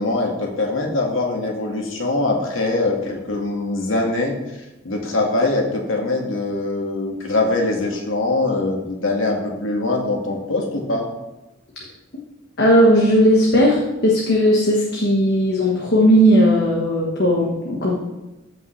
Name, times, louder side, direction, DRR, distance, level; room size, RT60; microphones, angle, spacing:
voice 1, 0.0-4.3 4.8-11.1, left 2 dB, 85° left, 1 dB, 1.7 m, -22 dB
voice 2, 12.6-18.0, equal, 55° left, -2 dB, 1.3 m, -16 dB
14.5 x 5.5 x 3.2 m, 1.0 s
head